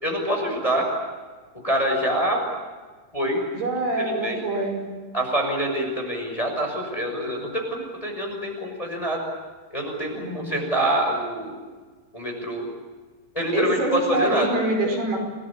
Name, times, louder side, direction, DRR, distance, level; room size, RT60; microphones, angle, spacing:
voice 1, 0.0-0.9 1.6-2.4 3.1-3.4 4.1-4.4 5.1-9.2 9.7-11.6 12.1-12.6 13.3-14.5, right 1 dB, 10° left, 2 dB, 5.8 m, -25 dB
voice 2, 3.5-4.9 10.2-10.6 13.5-15.2, right 2 dB, 70° right, 2 dB, 7.2 m, -26 dB
28.5 x 20.0 x 8.8 m, 1.4 s
omnidirectional pair, 4.7 m